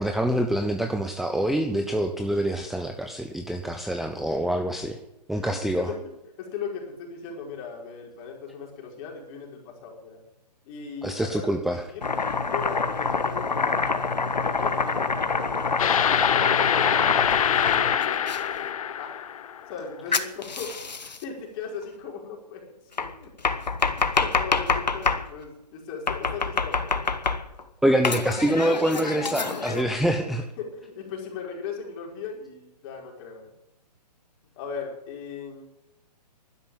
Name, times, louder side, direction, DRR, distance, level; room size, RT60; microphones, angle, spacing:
voice 1, 0.0-5.0 5.3-5.9 11.0-11.8 27.8-30.4, right 1 dB, ahead, 5 dB, 0.7 m, -25 dB
voice 2, 5.3-6.1 6.4-10.2 10.6-12.1 12.5-13.9 14.3-16.0 16.3-16.9 17.3-19.1 19.7-20.9 21.2-22.6 23.0-23.3 23.9-27.1 30.6-33.5 34.6-35.6, left 5 dB, 35° left, 0 dB, 5.0 m, -38 dB
Domestic sounds home sounds, 12.0-18.4 20.1-21.2 23.0-25.3 26.1-27.6 28.0-29.8, left 4 dB, 90° left, 1.5 m, -26 dB
sound 1, 15.8-19.7, left 9 dB, 55° left, 1.0 m, -24 dB
12.0 x 11.0 x 9.0 m, 0.86 s
hypercardioid pair, 135°, 21 cm